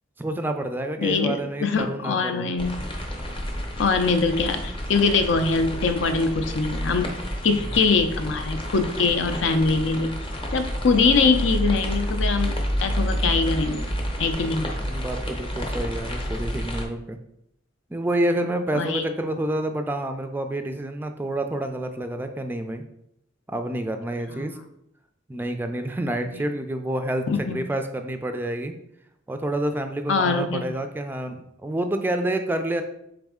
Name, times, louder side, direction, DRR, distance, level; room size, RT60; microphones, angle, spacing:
voice 1, 0.2-2.5 14.4-17.2 17.9-22.8 23.5-24.6 25.3-28.8 29.3-32.8, right 1 dB, 10° right, 6 dB, 0.3 m, -28 dB
voice 2, 1.0-2.8 3.8-7.2 7.4-10.1 10.5-13.9 14.2-14.7 18.7-19.0 26.3-26.4 27.3-27.6 30.1-30.7, left 4 dB, 70° left, 8 dB, 0.5 m, -23 dB
sound 1, 2.6-16.8, equal, 30° left, 0.7 m, -29 dB
4.1 x 3.5 x 3.6 m, 0.77 s
head